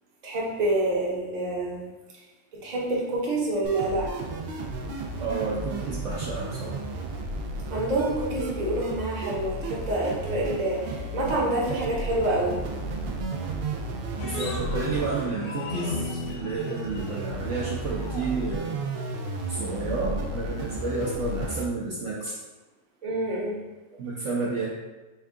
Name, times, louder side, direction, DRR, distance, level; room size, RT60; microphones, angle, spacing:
voice 1, 0.2-1.8 2.6-4.1 7.7-12.6 23.0-23.6, right 1 dB, 35° right, -4 dB, 0.8 m, -27 dB
sound 1, 3.6-21.7, right 2 dB, 85° right, 0.5 m, -33 dB
voice 2, 5.2-6.7 14.2-18.8 19.5-22.4 24.0-24.7, right 3 dB, 65° right, -5 dB, 0.9 m, -31 dB
sound 2, 14.2-20.8, left 3 dB, 55° left, 0.6 m, -38 dB
4.4 x 2.3 x 3.6 m, 1.2 s
omnidirectional pair, 1.6 m